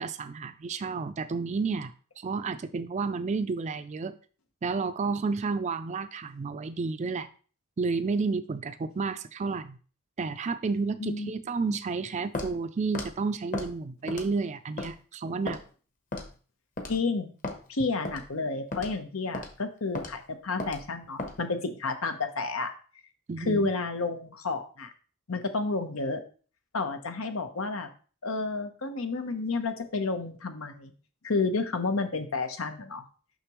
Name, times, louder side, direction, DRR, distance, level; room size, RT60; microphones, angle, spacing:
voice 1, 0.0-4.2 4.6-7.3 7.8-9.8 10.2-15.6 23.3-23.7, right 4 dB, 35° right, 11 dB, 0.4 m, -31 dB
voice 2, 11.0-11.3 16.9-17.3 17.7-22.7 23.4-24.9 25.3-26.2 26.7-27.9 28.2-30.9 31.2-33.0, left 3 dB, 90° left, 7 dB, 1.0 m, -30 dB
Walk footsteps, 12.3-12.5 12.9-13.1 13.5-13.7 14.1-14.4 14.8-14.9 15.5-15.6 16.1-16.3 16.8-17.0 17.4-17.6 18.0-18.2 18.7-18.9 19.3-19.5 19.9-20.1 20.6-20.8 21.2-21.4, left 2 dB, 40° left, 1.1 m, -34 dB
6.6 x 5.8 x 3.1 m, 0.39 s
head